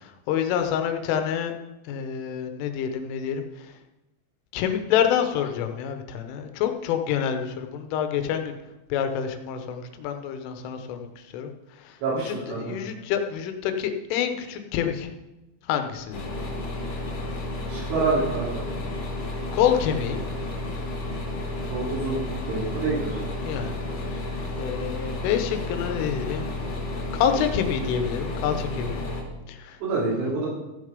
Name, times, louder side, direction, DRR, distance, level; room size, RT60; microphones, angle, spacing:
voice 1, 0.0-1.5 1.9-3.4 4.5-8.6 8.9-11.1 11.3-11.5 11.9-12.0 12.3-15.1 15.7-16.2 19.5-20.2 23.4-23.7 24.1-24.3 24.6-26.7 27.1-29.0 29.5-29.8 30.1-30.3, left 9 dB, 90° left, 7 dB, 3.5 m, -27 dB
voice 2, 12.0-12.6 17.7-18.7 21.7-22.2 22.5-23.2 29.8-30.5, right 3 dB, 80° right, -7 dB, 5.4 m, -26 dB
sound 1, 16.1-29.2, left 2 dB, 50° left, 2.2 m, -32 dB
15.0 x 6.7 x 5.2 m, 0.99 s
omnidirectional pair, 5.5 m